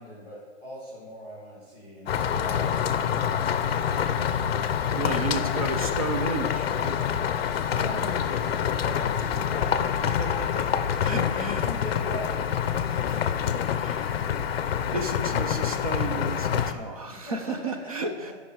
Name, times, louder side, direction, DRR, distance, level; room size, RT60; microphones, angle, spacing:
voice 1, 0.0-3.5 4.8-5.6 7.5-9.8 11.3-12.4 16.6-16.7 17.1-17.5 18.0-18.1, equal, 15° right, -12 dB, 2.6 m, -41 dB
sound 1, 2.1-16.7, left 8 dB, 55° left, 0.6 m, -26 dB
voice 2, 4.9-7.2 10.0-10.7 11.0-11.7 12.9-14.3 14.9-18.3, right 3 dB, 30° right, 6 dB, 0.5 m, -33 dB
12.0 x 5.3 x 4.6 m, 1.5 s
hypercardioid pair, 170°, 37 cm